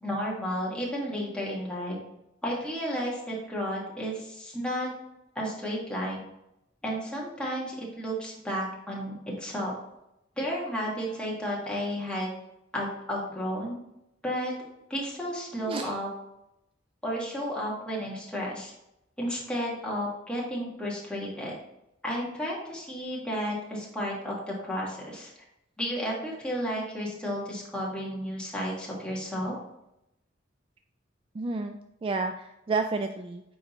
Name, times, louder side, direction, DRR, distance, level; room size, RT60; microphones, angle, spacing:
voice 1, 0.0-2.0 2.4-4.9 5.3-6.2 6.8-9.7 10.4-12.3 12.7-13.8 14.2-14.5 14.9-16.1 17.0-18.7 19.2-21.5 22.0-25.3 25.8-29.5, equal, 5° left, -5 dB, 1.7 m, -32 dB
voice 2, 15.6-16.0 31.3-33.4, right 3 dB, 30° right, 6 dB, 0.3 m, -31 dB
9.5 x 3.8 x 3.0 m, 0.86 s
head